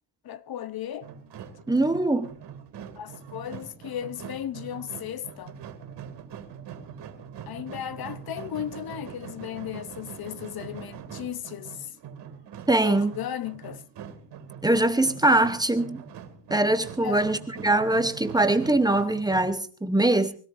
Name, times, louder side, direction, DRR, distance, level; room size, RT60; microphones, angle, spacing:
voice 1, 0.2-1.1 3.0-5.6 7.5-11.9 12.8-13.8 17.0-17.3, left 10 dB, 55° left, 0.9 m, -35 dB
sound 1, 1.0-19.5, right 7 dB, 70° right, 2.5 m, -43 dB
voice 2, 1.7-2.3 12.7-13.1 14.6-16.0 16.5-20.3, right 2 dB, 10° right, 0.9 m, -22 dB
23.5 x 17.5 x 2.6 m
wide cardioid pair, 180°, 43 cm